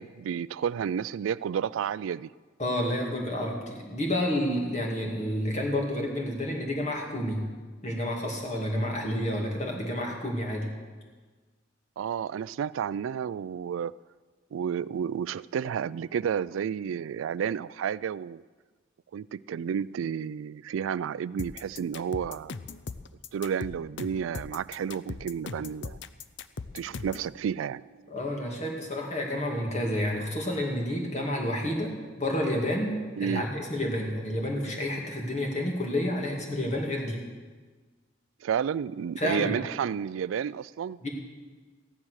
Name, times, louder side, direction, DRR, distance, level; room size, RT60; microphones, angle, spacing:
voice 1, 0.0-2.3 12.0-14.0 14.5-18.4 19.1-22.5 23.3-26.0 26.7-27.8 33.2-33.5 38.4-41.0, right 8 dB, 90° right, 0.3 m, -31 dB
voice 2, 2.6-7.4 7.8-10.7 28.1-37.2 39.2-39.5 41.0-41.1, left 1 dB, 35° left, 2.4 m, -30 dB
sound 1, 21.4-27.3, left 4 dB, 65° left, 0.6 m, -39 dB
14.5 x 11.0 x 6.4 m
head